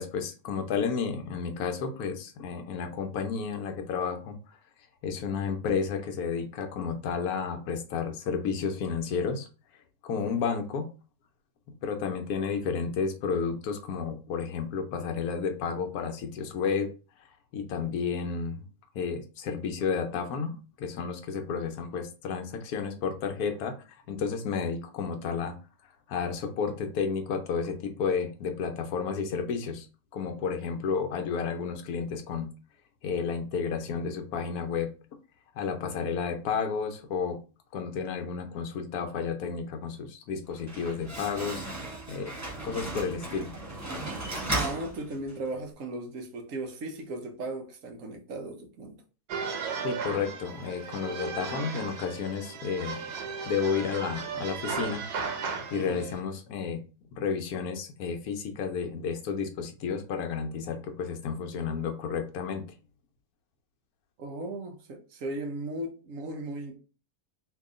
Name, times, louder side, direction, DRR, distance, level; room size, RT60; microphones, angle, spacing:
voice 1, 0.0-4.4 5.0-9.5 10.0-10.9 11.8-16.9 17.5-18.6 18.9-23.7 24.1-25.5 26.1-29.9 30.1-32.5 33.0-34.9 35.5-37.4 37.7-41.7 42.1-42.3 42.6-43.5 49.8-53.0 53.5-55.1 55.7-56.8 57.1-62.6, left 6 dB, 75° left, 1.1 m, -31 dB
voice 2, 10.1-10.4 44.5-49.0 55.7-56.1 64.2-66.8, right 2 dB, 65° right, 1.1 m, -37 dB
Slam, 40.4-45.5, right 2 dB, 15° right, 0.9 m, -35 dB
sound 1, 49.3-56.2, right 5 dB, 85° right, 1.2 m, -36 dB
3.0 x 2.7 x 3.6 m
omnidirectional pair, 1.6 m